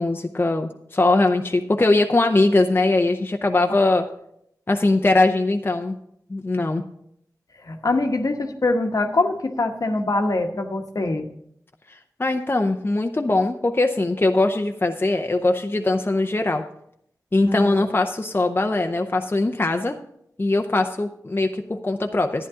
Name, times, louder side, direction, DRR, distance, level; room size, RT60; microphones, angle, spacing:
voice 1, 0.0-4.0 4.7-6.0 6.3-6.8 11.9-16.6 17.3-20.0 20.4-22.5, left 2 dB, 30° left, 5 dB, 0.7 m, -21 dB
voice 2, 7.6-11.3 17.5-17.8, left 2 dB, 60° left, 5 dB, 1.1 m, -24 dB
11.0 x 9.8 x 3.7 m, 0.73 s
cardioid pair, 45°, 7 cm